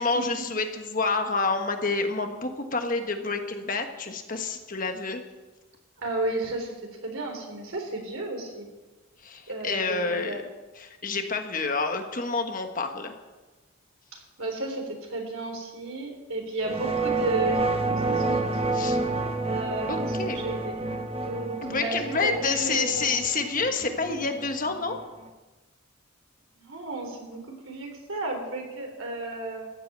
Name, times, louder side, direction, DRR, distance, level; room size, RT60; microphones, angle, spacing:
voice 1, 0.0-5.2 9.2-10.4 10.8-13.1 18.7-19.0 19.9-20.4 21.6-25.0, left 4 dB, 40° left, 5 dB, 1.4 m, -28 dB
voice 2, 6.0-8.7 9.5-10.4 14.1-18.6 19.4-23.0 26.6-29.7, right 2 dB, 90° right, 3 dB, 3.7 m, -33 dB
sound 1, 16.6-25.3, right 3 dB, 30° right, 0.9 m, -29 dB
14.5 x 8.8 x 8.8 m, 1.2 s
head